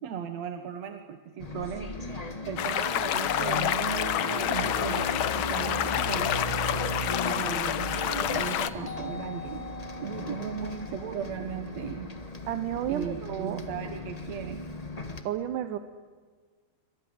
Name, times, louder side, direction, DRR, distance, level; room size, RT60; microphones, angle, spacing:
voice 1, 0.0-2.2 2.5-6.4 7.2-9.6 10.0-12.1 12.9-14.7, right 8 dB, 65° right, 7 dB, 2.4 m, -37 dB
Bus, 1.4-15.2, left 1 dB, 30° left, 0.6 m, -37 dB
sound 1, 2.6-8.7, left 10 dB, 85° left, 1.1 m, -28 dB
sound 2, 8.3-12.6 14.8-14.9, left 5 dB, 15° left, 1.4 m, -45 dB
voice 2, 12.5-13.6 15.2-15.8, right 11 dB, 85° right, 9 dB, 2.5 m, -31 dB
27.5 x 25.0 x 8.0 m, 1.5 s
omnidirectional pair, 3.6 m